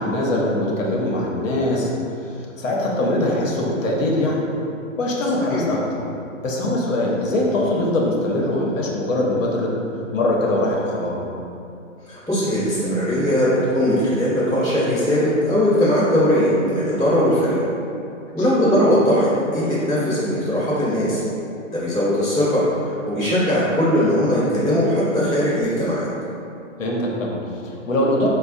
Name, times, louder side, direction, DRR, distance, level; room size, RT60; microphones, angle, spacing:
voice 1, 0.0-1.9 2.2-4.4 5.0-6.0 6.4-9.7 10.1-11.2 18.4-18.5 26.8-28.3, left 1 dB, 75° left, -2 dB, 0.8 m, -22 dB
voice 2, 12.1-17.6 18.3-21.2 21.7-26.1, equal, ahead, -31 dB, 0.4 m, -19 dB
4.1 x 2.2 x 2.6 m, 2.6 s
hypercardioid pair, 150°, 39 cm